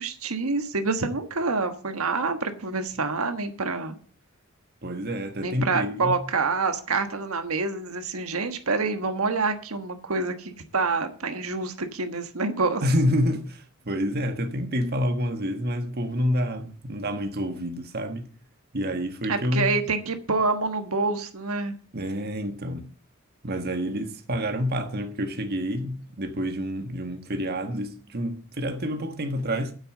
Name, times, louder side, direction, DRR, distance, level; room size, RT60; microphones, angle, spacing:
voice 1, 0.0-4.0 5.4-12.8 19.3-21.7, right 4 dB, 90° right, 1.4 m, -27 dB
voice 2, 4.8-6.2 12.8-18.3 18.7-19.7 21.9-22.9 23.4-29.7, equal, 50° right, 1.5 m, -28 dB
9.4 x 8.0 x 7.5 m
head